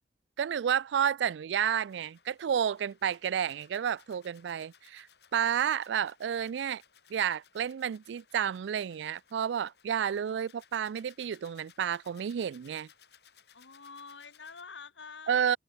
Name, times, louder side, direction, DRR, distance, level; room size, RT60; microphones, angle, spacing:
voice 1, 0.4-5.1 5.3-6.8 7.1-12.9 15.3-15.6, right 8 dB, 75° right, 0.3 m, -30 dB
sound 1, 1.8-14.6, left 8 dB, 65° left, 4.8 m, -62 dB
voice 2, 13.5-15.6, left 5 dB, 85° left, 2.2 m, -47 dB
head